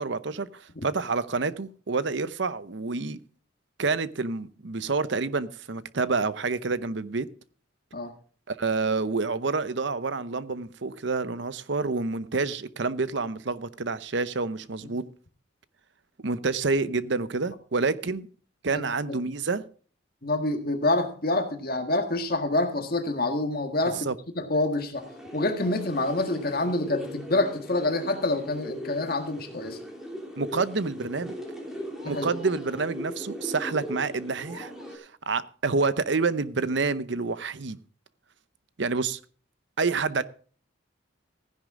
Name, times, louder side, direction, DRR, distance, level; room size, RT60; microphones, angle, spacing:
voice 1, 0.0-3.2 3.8-7.3 8.5-15.0 16.2-18.3 18.6-19.6 24.0-24.1 30.4-31.3 32.0-37.8 38.8-39.2 39.8-40.2, right 4 dB, 65° right, 0.8 m, -28 dB
voice 2, 18.7-19.2 20.2-24.1 24.3-25.0 25.3-29.8 32.0-32.3, left 2 dB, 50° left, 1.7 m, -27 dB
sound 1, 24.9-35.0, equal, 5° right, 3.2 m, -39 dB
15.5 x 10.5 x 3.7 m
head